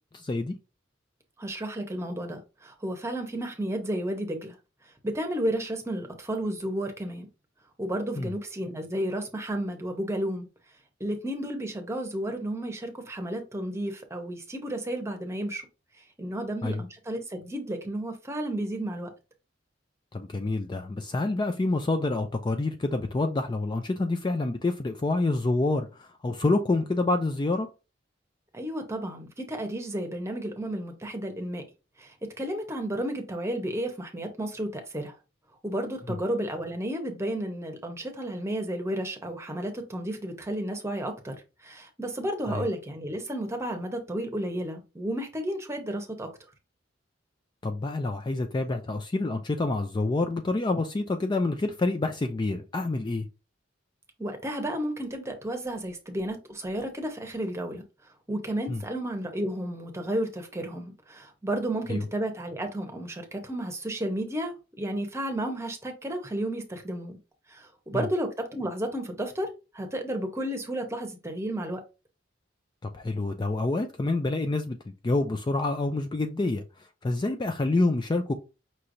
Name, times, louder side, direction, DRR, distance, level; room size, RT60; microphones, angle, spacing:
voice 1, 0.1-0.5 8.2-8.3 16.6-16.8 20.1-27.7 36.1-36.2 42.5-42.6 47.6-53.3 58.7-58.8 61.9-62.0 67.9-68.1 72.8-74.8 75.0-78.3, left 2 dB, 25° left, 0.4 m, -27 dB
voice 2, 1.4-4.6 5.0-7.3 7.8-10.5 11.0-15.7 16.2-19.1 28.5-31.6 32.0-35.1 35.6-41.4 41.6-46.3 54.2-57.8 58.3-67.2 67.5-69.5 69.7-71.8, right 1 dB, 15° right, 0.9 m, -32 dB
5.6 x 3.1 x 2.6 m
head